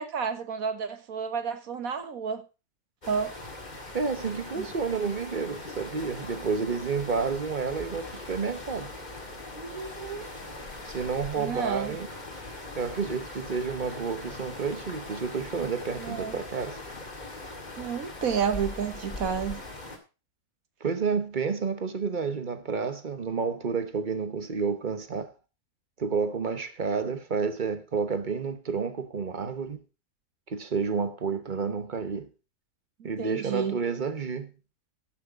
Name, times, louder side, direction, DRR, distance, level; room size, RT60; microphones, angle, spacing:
voice 1, 0.0-2.4 3.1-3.3 4.6-4.7 9.5-10.3 11.4-12.0 16.0-16.3 17.8-19.6 33.0-33.8, right 6 dB, 60° right, 1.6 m, -31 dB
sound 1, 3.0-20.0, left 2 dB, 25° left, 2.0 m, -41 dB
voice 2, 3.9-8.9 10.8-12.1 12.7-16.8 20.8-25.3 26.0-29.8 30.5-32.3 33.0-34.5, right 5 dB, 35° right, 1.0 m, -30 dB
13.5 x 6.6 x 4.8 m
omnidirectional pair, 1.7 m